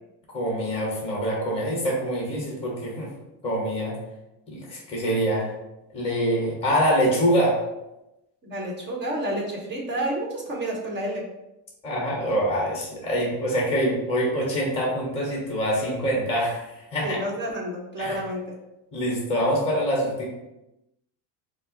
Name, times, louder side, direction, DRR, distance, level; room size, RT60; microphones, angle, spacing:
voice 1, 0.3-3.1 3.4-3.9 4.5-5.5 5.9-7.6 11.8-17.2 18.0-18.2 18.9-20.3, equal, 10° left, -2 dB, 1.2 m, -25 dB
voice 2, 8.4-11.2 17.0-18.4, right 1 dB, 20° right, -2 dB, 1.1 m, -30 dB
5.3 x 2.1 x 3.9 m, 0.92 s
cardioid pair, 145°, 48 cm